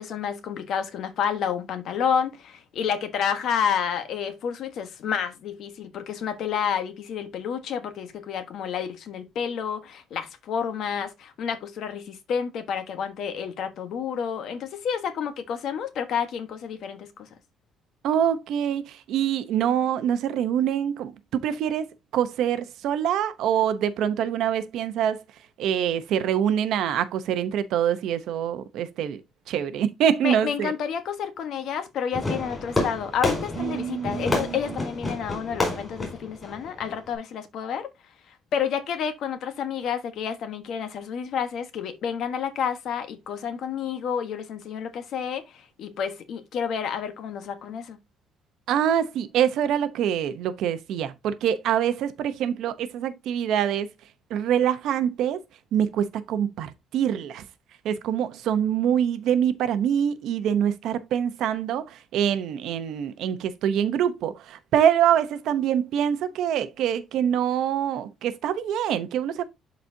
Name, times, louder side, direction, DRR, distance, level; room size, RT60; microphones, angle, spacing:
voice 1, 0.0-17.3 30.2-37.9 38.5-48.0, left 7 dB, 50° left, 1.2 m, -30 dB
voice 2, 18.0-21.9 22.1-25.2 25.6-29.2 29.5-30.7 33.6-34.6 48.7-53.9 54.3-55.4 55.7-57.4 57.8-61.9 62.1-69.4, right 9 dB, 60° right, 0.8 m, -25 dB
Fireworks, 32.1-37.2, left 2 dB, 10° left, 4.2 m, -30 dB
12.0 x 4.2 x 2.7 m
cardioid pair, 175°, 0 cm